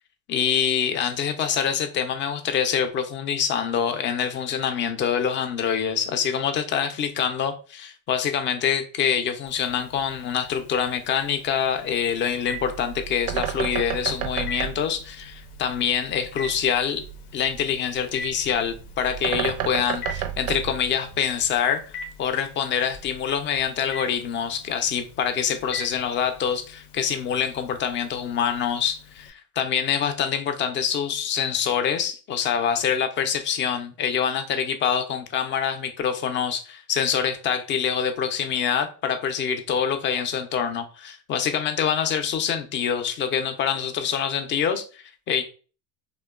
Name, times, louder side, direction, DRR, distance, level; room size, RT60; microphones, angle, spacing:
voice 1, 0.3-17.0 17.3-45.4, left 8 dB, 30° left, 0.3 m, -25 dB
Telephone, 9.5-29.3, left 3 dB, 90° left, 0.5 m, -43 dB
Bird, 12.4-21.6, right 9 dB, 80° right, 0.5 m, -32 dB
2.9 x 2.1 x 2.2 m
supercardioid pair, 95°, 44 cm